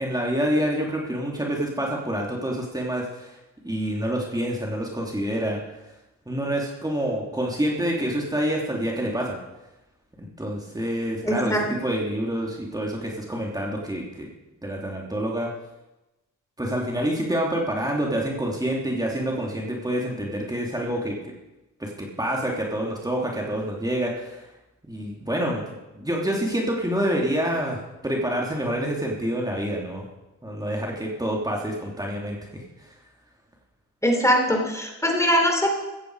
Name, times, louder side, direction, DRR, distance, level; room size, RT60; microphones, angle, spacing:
voice 1, 0.0-3.4 3.6-5.6 6.3-9.4 10.2-14.3 14.6-15.5 16.6-21.3 21.8-24.4 24.9-25.6 25.9-30.0 30.4-32.9, right 1 dB, 10° right, -2 dB, 3.3 m, -27 dB
voice 2, 11.2-11.7 34.0-35.7, equal, 10° left, 2 dB, 3.7 m, -21 dB
16.0 x 15.0 x 5.0 m, 0.98 s
cardioid pair, 75°, 31 cm